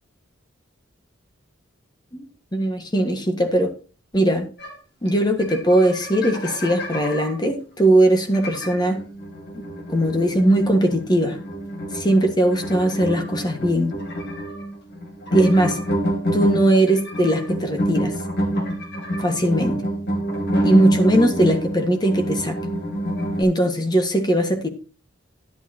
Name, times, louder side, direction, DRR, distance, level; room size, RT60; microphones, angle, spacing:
voice 1, 2.5-3.7 4.1-4.5 5.0-9.0 9.9-11.4 11.9-13.9 15.3-15.8 16.3-18.1 19.2-19.8 20.6-22.5 23.4-24.7, right 1 dB, 20° left, 6 dB, 1.5 m, -19 dB
sound 1, 4.6-4.7 5.1-5.2 5.4-7.3 8.3-23.4, equal, 55° left, 2.6 m, -27 dB
11.5 x 11.0 x 2.8 m, 0.36 s
head